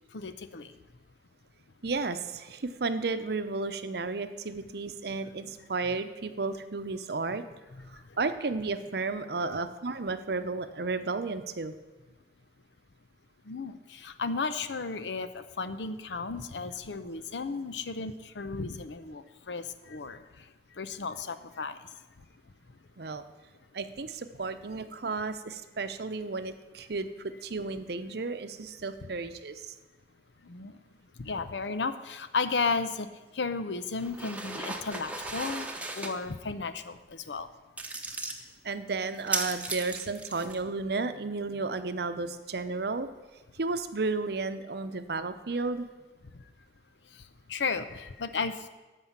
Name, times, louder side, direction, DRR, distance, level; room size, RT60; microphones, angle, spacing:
voice 1, 0.1-0.7 7.7-7.8 9.4-9.6 13.5-20.2 20.8-21.8 30.5-30.8 31.2-33.1 33.3-35.7 36.0-37.5 47.5-48.7, left 4 dB, 90° left, 11 dB, 0.7 m, -34 dB
voice 2, 1.8-7.4 7.9-11.7 23.0-23.2 23.7-29.7 38.6-43.1 43.5-45.9, right 3 dB, 60° right, 10 dB, 0.7 m, -33 dB
sound 1, 34.0-36.1 37.8-38.4 39.1-40.6, right 2 dB, 10° right, 0.9 m, -36 dB
13.5 x 5.6 x 7.3 m, 1.2 s
head